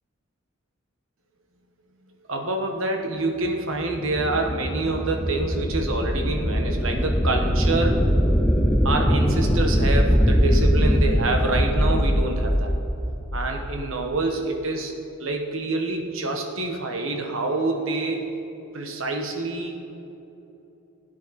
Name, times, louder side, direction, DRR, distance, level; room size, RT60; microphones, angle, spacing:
voice 1, 2.3-8.0 8.8-12.7 13.3-14.9 15.2-18.3 18.7-19.8, right 2 dB, 70° right, 2 dB, 1.4 m, -26 dB
sound 1, 3.8-13.9, equal, 5° left, 0.6 m, -22 dB
16.5 x 9.6 x 4.3 m, 3.0 s
head